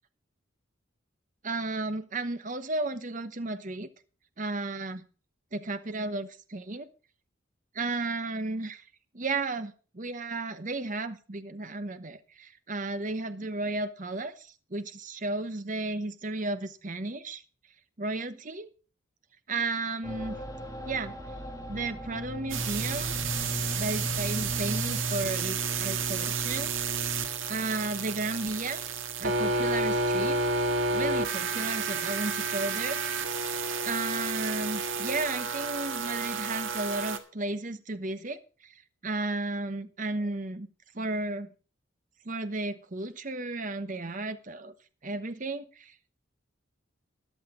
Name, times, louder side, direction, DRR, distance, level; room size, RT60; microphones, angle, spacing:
voice 1, 1.4-3.9 4.4-5.0 5.5-6.9 7.7-8.9 9.1-17.4 18.0-18.7 19.5-20.3 20.9-21.1 21.7-23.2 23.7-26.7 27.5-28.9 29.2-30.4 30.9-33.0 33.8-38.7 39.0-40.7 40.9-41.5 42.2-44.7 45.0-46.1, right 2 dB, 40° right, 11 dB, 1.0 m, -33 dB
sound 1, 20.0-25.0, equal, 15° left, 2.2 m, -40 dB
sound 2, 22.5-37.2, right 3 dB, 75° right, 1.7 m, -30 dB
14.5 x 11.0 x 3.8 m, 0.36 s
head